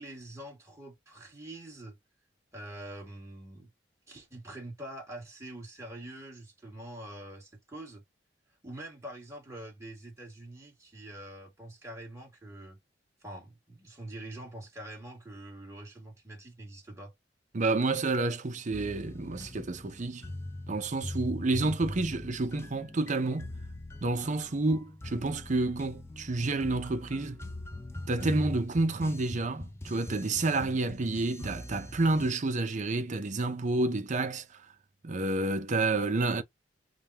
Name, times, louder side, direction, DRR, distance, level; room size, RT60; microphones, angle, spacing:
voice 1, 0.0-2.0 2.5-3.7 4.1-8.0 8.6-12.8 13.2-17.1, right 1 dB, 15° right, 1.8 m, -45 dB
voice 2, 17.5-20.3 20.7-23.5 24.0-27.4 28.1-34.7 35.0-36.4, right 2 dB, 40° right, 0.6 m, -29 dB
sound 1, 18.7-32.3, left 1 dB, 15° left, 0.5 m, -42 dB
5.0 x 2.2 x 2.8 m
head